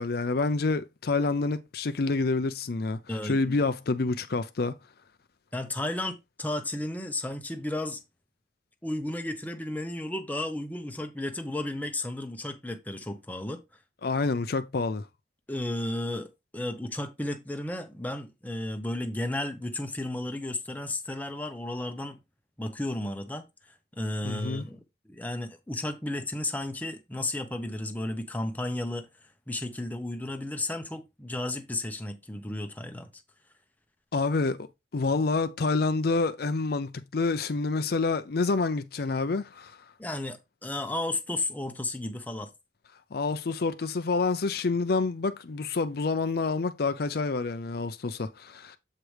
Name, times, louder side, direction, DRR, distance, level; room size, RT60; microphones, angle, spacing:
voice 1, 0.0-4.8 14.0-15.1 24.2-24.6 34.1-39.8 43.1-48.8, left 3 dB, 55° left, 0.5 m, -28 dB
voice 2, 3.1-3.6 5.5-8.0 8.8-13.6 15.5-22.2 22.6-23.4 24.0-29.1 29.5-33.1 40.0-42.5, left 1 dB, 10° left, 0.8 m, -33 dB
7.6 x 4.7 x 3.3 m
head